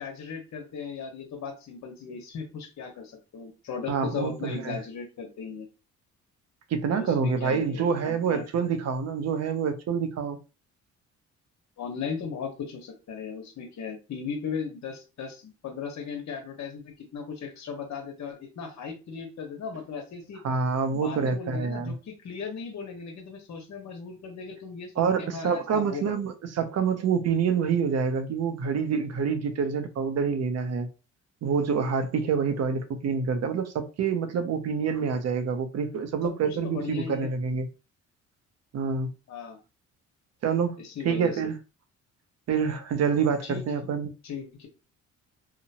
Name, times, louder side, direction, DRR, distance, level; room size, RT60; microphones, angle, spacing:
voice 1, 0.0-5.7 6.9-8.5 11.8-20.4 20.9-26.2 36.2-37.3 39.3-39.6 40.8-41.4 43.4-43.6 44.2-44.7, left 6 dB, 65° left, 1.1 m, -37 dB
voice 2, 3.9-4.8 6.7-10.4 20.4-21.9 25.0-30.9 31.4-37.7 38.7-39.1 40.4-40.8 41.0-41.6 42.5-44.1, right 6 dB, 60° right, 0.6 m, -27 dB
2.8 x 2.0 x 2.8 m
cardioid pair, 90°, 30 cm